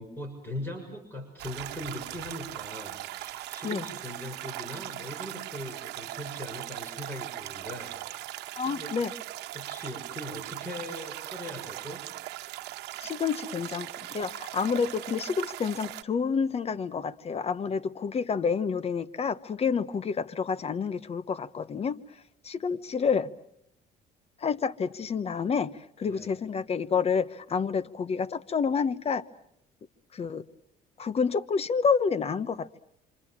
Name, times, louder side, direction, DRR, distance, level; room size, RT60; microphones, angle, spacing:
voice 1, 0.0-8.3 8.6-8.9 9.5-12.0 14.7-14.8 26.1-26.3, left 1 dB, 15° left, 6.5 m, -40 dB
sound 1, 1.4-16.0, right 16 dB, 85° right, 1.1 m, -39 dB
voice 2, 8.5-9.1 13.0-22.0 22.4-23.3 24.4-29.3 30.1-30.4 31.0-32.8, left 6 dB, 35° left, 1.1 m, -29 dB
27.5 x 26.5 x 7.4 m
cardioid pair, 110°, 17 cm